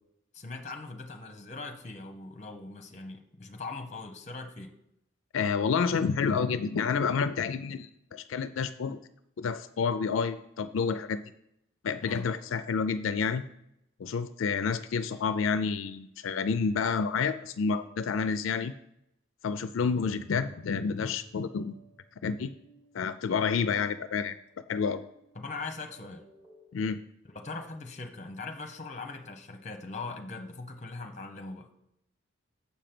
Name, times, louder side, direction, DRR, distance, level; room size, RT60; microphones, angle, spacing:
voice 1, 0.3-4.7 12.0-12.3 25.3-26.2 27.2-31.7, left 3 dB, 35° left, 5 dB, 0.8 m, -41 dB
voice 2, 5.3-9.0 9.4-11.2 11.8-13.4 14.0-18.7 19.4-21.7 22.2-22.5 22.9-24.3 24.7-25.0 26.7-27.0, left 5 dB, 80° left, 12 dB, 0.4 m, -29 dB
sound 1, 20.0-26.8, equal, 10° right, 3.1 m, -56 dB
7.2 x 5.1 x 5.9 m, 0.79 s
head